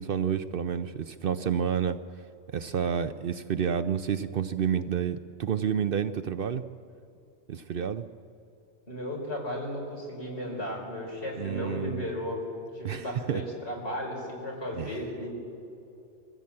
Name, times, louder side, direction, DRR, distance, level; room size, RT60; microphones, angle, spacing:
voice 1, 0.0-2.0 2.5-6.6 7.5-8.1 11.4-12.0 12.8-13.4 14.8-15.0, right 8 dB, 60° right, 11 dB, 0.7 m, -29 dB
voice 2, 8.9-12.4 12.7-15.3, left 1 dB, 65° left, -2 dB, 5.0 m, -35 dB
22.5 x 15.0 x 8.6 m, 2.7 s
omnidirectional pair, 1.2 m